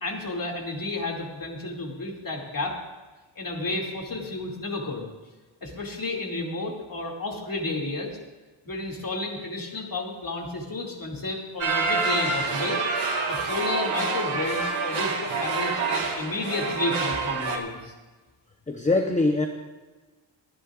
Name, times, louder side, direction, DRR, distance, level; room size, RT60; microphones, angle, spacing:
voice 1, 0.0-2.8 3.4-5.1 5.6-8.2 8.7-12.8 13.3-17.9, left 2 dB, 45° left, 0 dB, 2.5 m, -31 dB
sound 1, 11.6-17.6, right 4 dB, 80° right, 2.2 m, -27 dB
voice 2, 18.7-19.5, left 2 dB, 15° left, 4 dB, 0.8 m, -22 dB
28.0 x 10.0 x 2.5 m, 1.3 s
wide cardioid pair, 115°, 48 cm